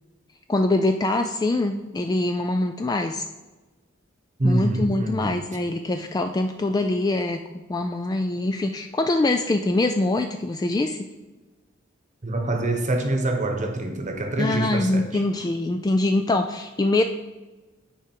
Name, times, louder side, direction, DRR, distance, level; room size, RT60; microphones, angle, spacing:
voice 1, 0.5-3.3 4.4-7.4 7.7-11.1 14.4-17.0, left 2 dB, 20° left, 6 dB, 0.3 m, -24 dB
voice 2, 4.4-5.4 12.2-15.2, right 1 dB, 40° right, 5 dB, 1.0 m, -25 dB
9.1 x 4.9 x 4.5 m, 1.2 s
head